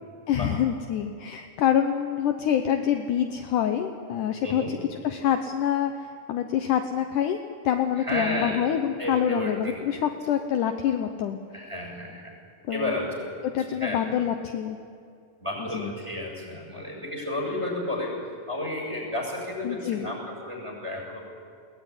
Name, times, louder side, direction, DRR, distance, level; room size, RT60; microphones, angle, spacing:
voice 1, 0.3-4.8 5.0-7.4 7.6-11.4 12.7-12.9 13.5-14.8 15.7-15.9 19.6-20.1, left 9 dB, 70° left, 6 dB, 2.2 m, -26 dB
voice 2, 4.4-4.8 8.0-8.6 9.0-10.1 11.5-12.4 12.7-14.1 15.4-21.2, left 1 dB, 10° right, -1 dB, 6.8 m, -32 dB
22.0 x 18.5 x 9.9 m, 2.4 s
omnidirectional pair, 4.1 m